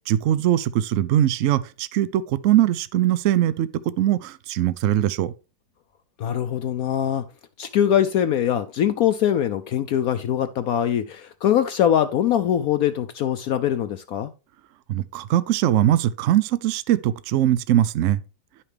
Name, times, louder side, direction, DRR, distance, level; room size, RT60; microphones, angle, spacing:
voice 1, 0.1-5.3 14.9-18.2, right 12 dB, 75° right, 0.7 m, -21 dB
voice 2, 6.2-7.2 7.6-14.3, left 10 dB, 70° left, 0.9 m, -22 dB
11.0 x 5.8 x 3.3 m
omnidirectional pair, 1.9 m